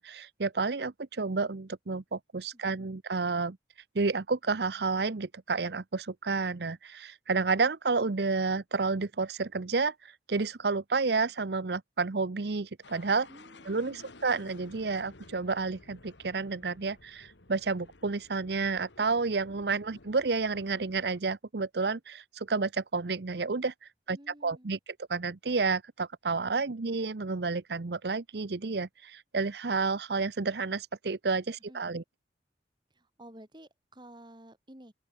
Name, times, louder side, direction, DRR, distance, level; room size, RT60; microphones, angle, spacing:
voice 1, 0.0-3.6 3.9-13.3 13.7-23.7 24.1-24.8 25.1-32.0, right 4 dB, 60° right, 0.8 m, -30 dB
sound 1, 12.8-21.2, left 2 dB, 85° left, 2.5 m, -54 dB
voice 2, 13.3-14.0 24.1-24.7 31.7-31.8 32.9-34.9, right 1 dB, 25° right, 3.8 m, -53 dB
open air
head